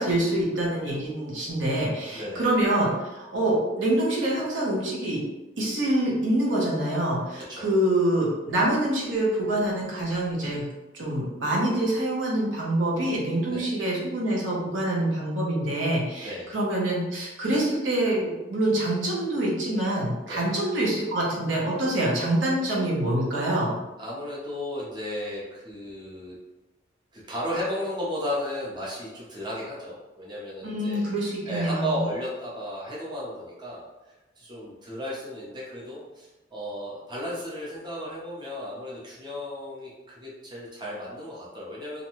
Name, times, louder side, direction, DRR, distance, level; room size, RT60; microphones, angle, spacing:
voice 1, 0.0-5.2 5.6-10.7 10.9-23.8 30.6-32.0, right 1 dB, 80° right, -4 dB, 0.8 m, -26 dB
voice 2, 2.1-2.5 7.3-7.7 13.5-13.7 16.2-16.5 20.3-20.5 24.0-26.3 27.1-31.0 31.4-33.8 34.4-42.0, equal, 25° right, -6 dB, 0.7 m, -34 dB
2.6 x 2.2 x 2.9 m, 1.1 s
head